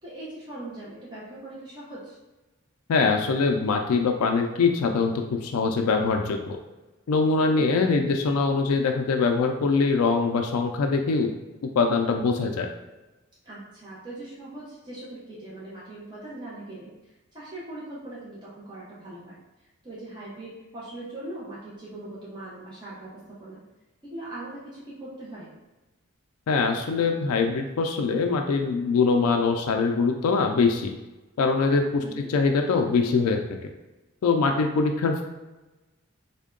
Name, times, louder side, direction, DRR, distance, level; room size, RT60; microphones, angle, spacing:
voice 1, 0.0-2.2 7.5-7.7 13.4-16.9 17.3-19.4 19.8-23.6 24.0-25.5 32.0-32.3, right 1 dB, 20° right, -8 dB, 0.7 m, -40 dB
voice 2, 2.9-6.6 7.1-11.3 11.8-12.7 26.5-30.9 31.4-32.0 32.3-33.6 34.2-35.2, left 4 dB, 90° left, 4 dB, 0.4 m, -23 dB
3.5 x 2.2 x 3.6 m, 1.1 s
head